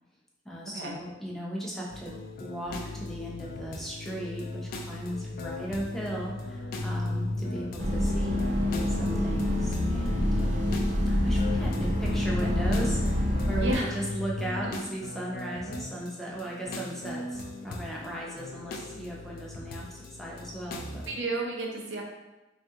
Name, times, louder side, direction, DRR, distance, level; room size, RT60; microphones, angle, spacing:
voice 1, 0.4-8.4 8.9-10.8 11.1-21.0, right 1 dB, ahead, -4 dB, 0.5 m, -37 dB
sound 1, 1.9-21.2, left 2 dB, 50° left, 0.3 m, -38 dB
sound 2, 7.8-13.8, left 1 dB, 45° right, 0.6 m, -26 dB
voice 2, 13.6-14.0 14.6-14.7 21.1-22.0, right 2 dB, 90° right, 0 dB, 0.6 m, -32 dB
3.3 x 2.4 x 2.7 m, 1.1 s
head